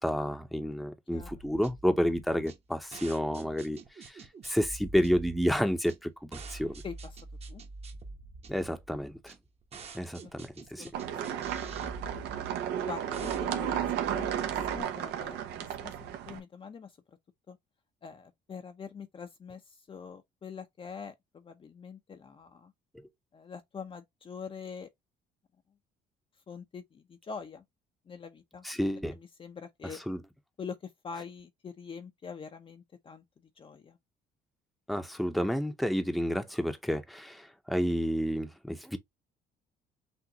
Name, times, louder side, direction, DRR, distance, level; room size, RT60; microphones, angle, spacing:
voice 1, 0.0-6.8 8.5-9.3 9.9-10.9 22.9-23.1 28.6-29.2 29.8-30.2 34.9-39.0, equal, ahead, 0.8 m, -30 dB
sound 1, 1.2-14.8, right 3 dB, 40° right, 1.1 m, -46 dB
sound 2, 10.9-16.4, right 9 dB, 85° right, 1.0 m, -33 dB
voice 2, 12.8-15.5 15.8-15.9 16.3-16.9 17.5-17.6 18.0-19.6 19.9-22.7 23.3-24.9 26.5-27.6 28.1-28.6 29.1-30.0 30.6-30.8 31.0-33.2 33.6-34.0, left 6 dB, 30° left, 0.6 m, -44 dB
6.1 x 2.5 x 2.8 m
cardioid pair, 110°, 17 cm